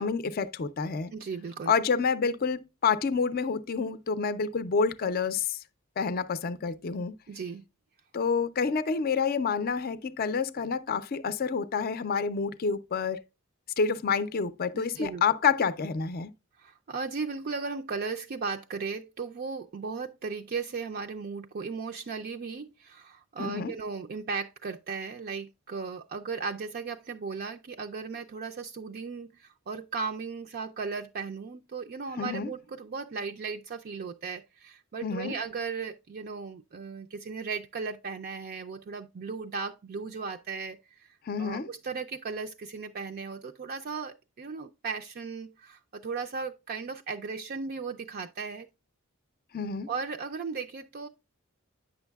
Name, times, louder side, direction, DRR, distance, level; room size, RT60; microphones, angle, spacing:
voice 1, 0.0-1.1 1.7-5.6 6.0-7.2 8.1-13.2 13.8-16.3 23.4-23.7 32.2-32.5 35.0-35.3 41.3-41.7 49.5-49.9, left 5 dB, 45° left, 0.5 m, -28 dB
voice 2, 1.1-1.7 7.3-7.6 14.7-15.2 16.6-48.7 49.9-51.1, right 5 dB, 45° right, 0.4 m, -36 dB
9.0 x 6.2 x 2.3 m
head